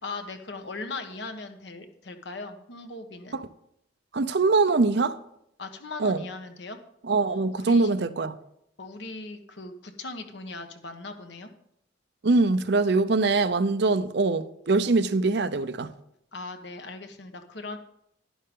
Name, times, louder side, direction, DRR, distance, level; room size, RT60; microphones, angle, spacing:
voice 1, 0.0-3.4 5.6-6.8 7.3-7.9 8.8-11.5 16.3-17.8, left 3 dB, 65° left, 1.2 m, -39 dB
voice 2, 4.1-5.2 6.0-6.2 7.0-8.3 12.2-15.9, right 3 dB, 60° right, 0.6 m, -23 dB
11.0 x 11.0 x 3.7 m
head